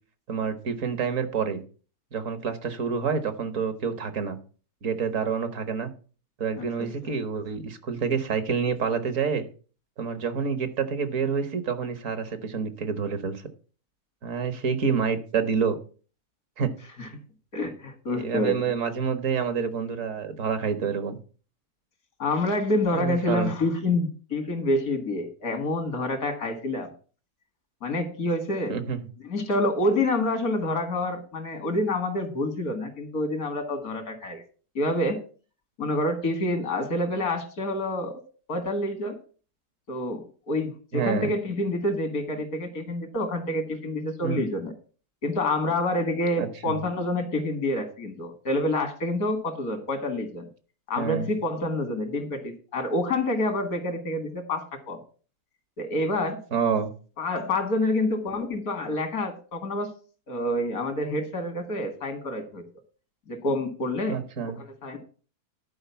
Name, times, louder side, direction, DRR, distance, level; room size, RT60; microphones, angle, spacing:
voice 1, 0.3-1.6 2.1-4.4 4.8-5.9 6.4-9.5 10.0-13.4 14.2-15.8 16.6-16.7 17.1-17.2 18.2-21.2 22.9-23.5 28.7-29.0 40.9-41.3 44.2-44.4 46.4-46.8 51.0-51.3 56.5-56.9 64.1-64.6, right 6 dB, 60° right, 10 dB, 1.6 m, -28 dB
voice 2, 6.6-6.9 17.0-17.1 17.5-18.6 22.2-26.9 27.8-28.8 29.3-34.4 34.8-35.2 35.8-38.2 38.5-39.2 39.9-44.7 45.2-50.5 50.9-55.0 55.8-56.4 57.2-59.9 60.3-62.6 63.3-64.2 64.6-65.0, left 1 dB, 80° left, 7 dB, 2.4 m, -27 dB
11.0 x 4.9 x 6.9 m, 0.38 s
omnidirectional pair, 1.5 m